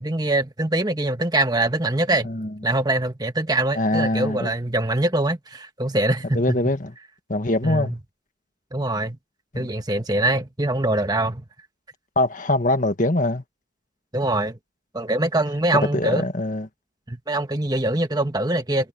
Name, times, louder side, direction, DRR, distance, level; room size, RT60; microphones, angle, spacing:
voice 1, 0.0-2.3 2.6-6.6 7.6-8.0 8.7-9.2 9.5-11.4 14.1-14.6 14.9-16.2 17.1-18.9, right 1 dB, 20° right, 1.4 m, -23 dB
voice 2, 2.2-2.5 3.7-4.5 6.3-6.9 7.3-8.0 9.5-9.7 12.1-13.4 15.9-16.7, left 1 dB, 40° left, 1.7 m, -23 dB
head